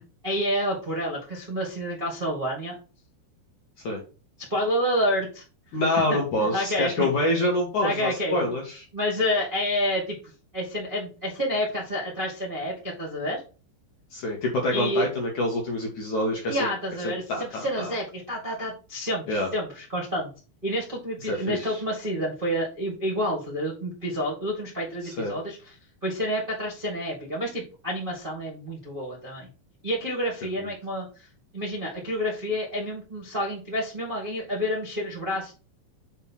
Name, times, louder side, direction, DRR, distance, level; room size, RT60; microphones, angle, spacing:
voice 1, 0.2-2.7 4.5-5.4 6.1-7.1 7.8-8.4 8.9-10.1 10.5-13.4 14.7-15.1 16.5-20.3 20.6-25.7 26.0-29.5 29.8-31.3 31.5-35.5, equal, 80° right, -4 dB, 0.4 m, -29 dB
voice 2, 5.7-8.8 14.1-16.7 17.0-17.9 19.3-19.5 21.3-21.8 25.0-25.4 30.6-30.7, left 1 dB, 60° left, -1 dB, 2.1 m, -26 dB
7.3 x 3.4 x 5.7 m, 0.35 s
omnidirectional pair, 5.3 m